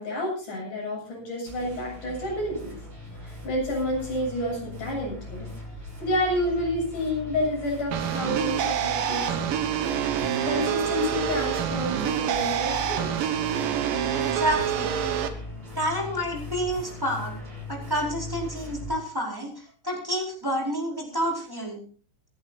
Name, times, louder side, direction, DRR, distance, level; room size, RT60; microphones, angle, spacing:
voice 1, 0.0-2.8 3.2-5.5 6.0-9.6 10.5-13.3, left 1 dB, 65° left, -2 dB, 9.3 m, -29 dB
sound 1, 1.4-18.9, left 1 dB, 40° right, 7.0 m, -39 dB
sound 2, 7.9-15.3, right 9 dB, 80° right, 2.9 m, -27 dB
voice 2, 14.2-14.9 15.8-17.3 17.7-21.8, equal, 5° right, -2 dB, 4.5 m, -29 dB
27.0 x 11.0 x 2.7 m, 0.41 s
omnidirectional pair, 3.9 m